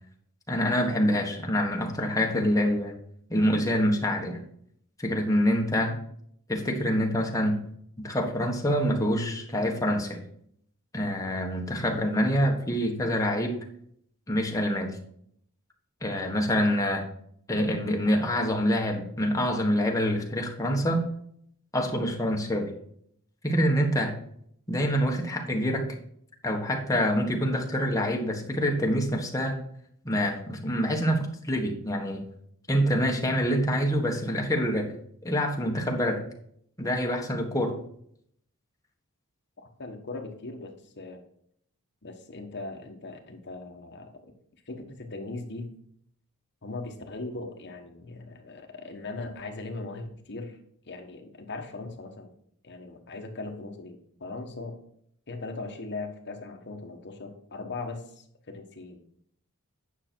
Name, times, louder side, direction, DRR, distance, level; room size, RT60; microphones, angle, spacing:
voice 1, 0.5-2.9 3.3-4.4 5.0-6.0 6.5-7.6 8.0-10.2 10.9-13.6 14.3-14.9 16.0-17.1 17.5-21.1 21.7-22.7 23.4-24.2 24.7-25.9 26.4-29.6 30.0-32.2 32.7-34.9 35.2-36.2 36.8-37.8, equal, 15° left, 1 dB, 1.5 m, -26 dB
voice 2, 39.6-41.2 42.0-44.3 44.7-45.7 46.6-50.6 50.8-52.3 52.6-54.8 55.3-59.0, left 3 dB, 50° left, 4 dB, 1.3 m, -39 dB
9.8 x 6.0 x 4.5 m, 0.67 s
head